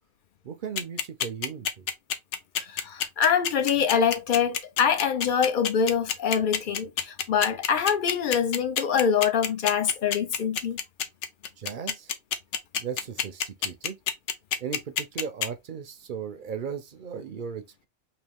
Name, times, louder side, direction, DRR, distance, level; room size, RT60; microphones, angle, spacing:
voice 1, 0.4-1.9 11.6-12.1 12.8-14.0 14.6-17.9, right 7 dB, 55° right, 0.6 m, -36 dB
sound 1, 0.8-15.5, left 8 dB, 75° left, 1.0 m, -27 dB
voice 2, 2.6-10.8, left 7 dB, 55° left, 0.6 m, -25 dB
3.8 x 2.8 x 3.4 m
omnidirectional pair, 1.2 m